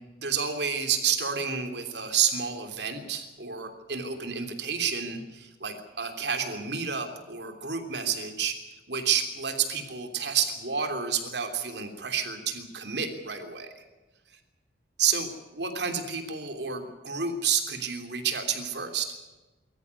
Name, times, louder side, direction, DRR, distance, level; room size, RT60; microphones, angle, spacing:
voice 1, 0.2-13.8 15.0-19.1, right 7 dB, 60° right, 6 dB, 3.2 m, -30 dB
24.0 x 14.5 x 9.6 m, 1.1 s
head